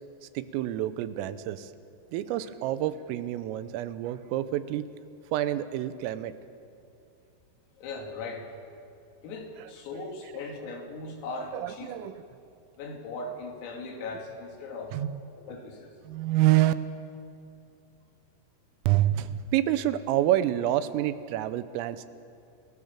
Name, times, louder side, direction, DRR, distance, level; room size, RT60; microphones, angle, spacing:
voice 1, 0.4-1.7 2.1-4.9 5.3-6.3 11.5-12.2 14.9-15.2 16.1-16.7 18.9-22.1, right 13 dB, 90° right, 13 dB, 3.5 m, -27 dB
voice 2, 7.8-8.5 9.2-12.1 12.8-15.0 15.4-15.9, left 3 dB, 85° left, 2 dB, 5.3 m, -39 dB
29.0 x 18.0 x 7.3 m, 2.6 s
omnidirectional pair, 5.9 m